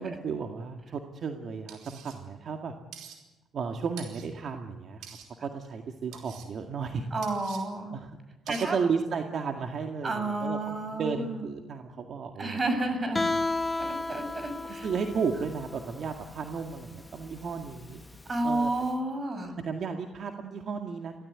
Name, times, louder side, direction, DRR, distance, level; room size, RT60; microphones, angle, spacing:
voice 1, 0.0-2.7 3.5-5.2 5.4-7.1 7.9-8.1 8.5-12.6 14.6-18.0 18.4-18.7 19.6-21.2, right 5 dB, 60° right, 4 dB, 2.0 m, -34 dB
sound 1, 1.7-2.2 2.9-3.2 4.0-4.3 5.0-5.3 6.1-6.5 7.2-7.6 8.5-8.7, right 8 dB, 85° right, 4.8 m, -46 dB
voice 2, 7.1-7.9 8.5-8.8 10.0-11.4 12.4-13.3 13.8-14.9 18.3-19.5, right 2 dB, 35° right, 8 dB, 6.5 m, -31 dB
Guitar, 13.1-18.8, left 2 dB, 15° left, 1.5 m, -34 dB
25.0 x 17.5 x 9.6 m, 1.1 s
cardioid pair, 90°, 0 cm